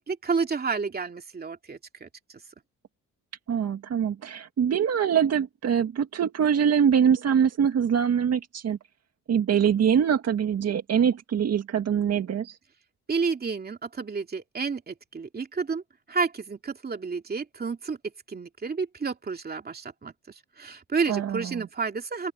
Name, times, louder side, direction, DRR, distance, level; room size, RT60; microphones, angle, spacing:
voice 1, 0.1-2.1 13.1-15.8 16.1-18.0 18.3-20.1 20.6-22.3, right 5 dB, 30° right, 2.7 m, -30 dB
voice 2, 3.5-8.8 9.3-12.6 21.1-21.7, right 8 dB, 55° right, 2.0 m, -24 dB
open air
cardioid pair, 90°, 30 cm